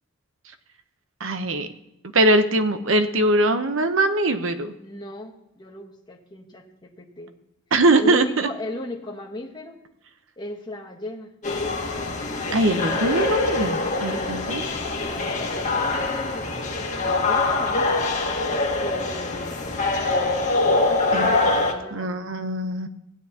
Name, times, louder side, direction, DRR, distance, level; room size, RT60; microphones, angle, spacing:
voice 1, 1.2-1.7 2.1-4.7 7.7-8.5 12.5-14.6 21.1-21.3 21.9-22.9, right 2 dB, 65° right, 9 dB, 0.8 m, -21 dB
voice 2, 4.8-7.3 8.0-9.8 10.4-11.3 14.9-18.1 18.8-19.9 20.6-22.2, left 1 dB, 20° left, 0 dB, 1.3 m, -37 dB
sound 1, 11.4-21.7, left 3 dB, 35° left, 1.5 m, -24 dB
16.0 x 9.5 x 2.9 m, 0.88 s
head